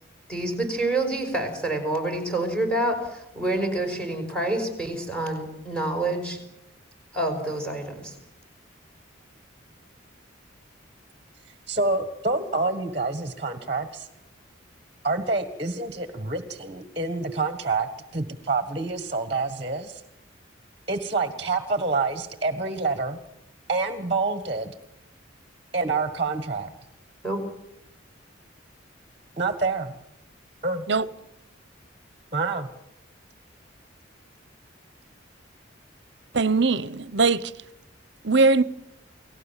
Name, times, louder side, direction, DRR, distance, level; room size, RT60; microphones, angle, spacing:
voice 1, 0.3-6.4 7.1-8.2 27.2-27.4, right 1 dB, 5° left, 5.4 m, -27 dB
voice 2, 11.7-14.1 15.0-20.0 20.9-23.2 23.7-24.7 25.7-26.7 29.4-29.9 30.6-30.8 32.3-32.7, right 3 dB, 30° right, 1.6 m, -27 dB
voice 3, 36.3-37.4 38.2-38.6, right 3 dB, 60° right, 0.9 m, -20 dB
29.5 x 19.0 x 7.4 m
head